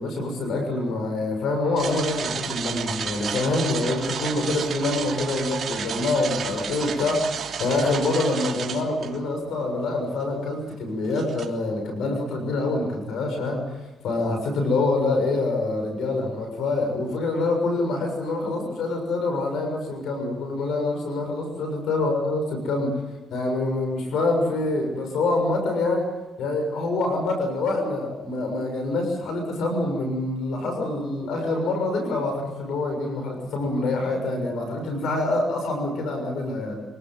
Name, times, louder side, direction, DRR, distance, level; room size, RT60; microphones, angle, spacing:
voice 1, 0.0-22.9 23.3-26.1 26.4-36.8, left 2 dB, 75° left, 4 dB, 6.7 m, -26 dB
sound 1, 1.8-9.2 9.8-9.9 11.0-11.5, right 6 dB, 50° right, 3.3 m, -32 dB
26.0 x 18.5 x 7.9 m, 1.1 s
cardioid pair, 90°, 0 cm